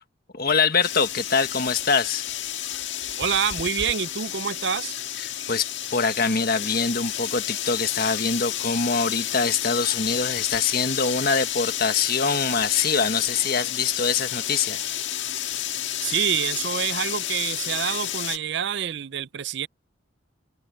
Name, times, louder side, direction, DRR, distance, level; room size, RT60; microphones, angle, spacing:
voice 1, 0.3-2.2 5.2-14.9, left 5 dB, 50° left, 1.5 m, -24 dB
sound 1, 0.8-18.4, left 11 dB, 75° left, 1.6 m, -30 dB
voice 2, 3.2-5.0 16.0-19.7, right 8 dB, 60° right, 0.5 m, -27 dB
head